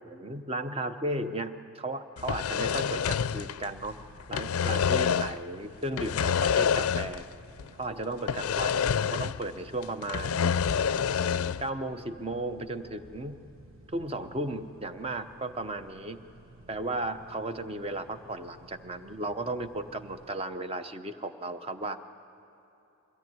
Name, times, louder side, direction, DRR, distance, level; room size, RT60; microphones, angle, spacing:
voice 1, 0.0-4.0 4.3-7.2 7.8-10.5 11.6-13.4 13.9-16.2 16.7-22.0, right 2 dB, 25° right, 9 dB, 0.7 m, -35 dB
sound 1, 2.2-3.9 4.2-5.4 5.9-7.3 7.6-7.7 8.3-9.5 9.8-11.7, left 7 dB, 75° left, 0.4 m, -27 dB
sound 2, 3.8-20.3, right 1 dB, 60° right, 1.4 m, -55 dB
22.5 x 16.5 x 9.4 m, 2.9 s
head